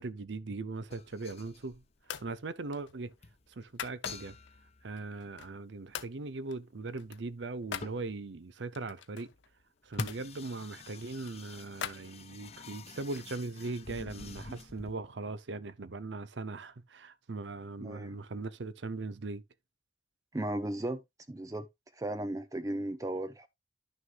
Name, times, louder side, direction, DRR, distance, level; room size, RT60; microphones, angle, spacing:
voice 1, 0.0-1.8 2.2-3.1 3.6-4.4 4.8-9.3 9.8-19.4, right 3 dB, 75° right, 0.7 m, -39 dB
sound 1, 0.8-2.4 2.9-3.0 3.2-3.5 4.1-5.4 7.5-7.6 7.8-8.2 9.8-14.9, left 3 dB, 35° left, 0.8 m, -46 dB
sound 2, 1.0-1.6 2.0-2.4 2.7-4.5 5.0-5.6 5.9-6.2 6.5-7.9 8.7-10.2 10.8-12.6, left 8 dB, 85° left, 0.7 m, -43 dB
voice 2, 17.8-18.2 20.3-21.7 21.9-23.5, right 1 dB, 20° right, 0.5 m, -36 dB
11.0 x 6.4 x 2.4 m
head